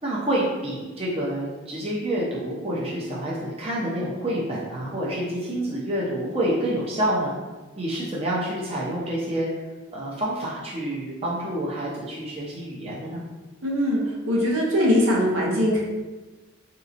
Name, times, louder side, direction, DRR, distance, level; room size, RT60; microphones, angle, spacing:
voice 1, 0.0-7.3 7.8-9.5 9.9-13.2, right 1 dB, 30° right, -6 dB, 0.6 m, -28 dB
voice 2, 13.6-14.0 14.3-15.8, equal, 75° right, -4 dB, 0.9 m, -21 dB
3.9 x 2.8 x 2.5 m, 1.2 s
head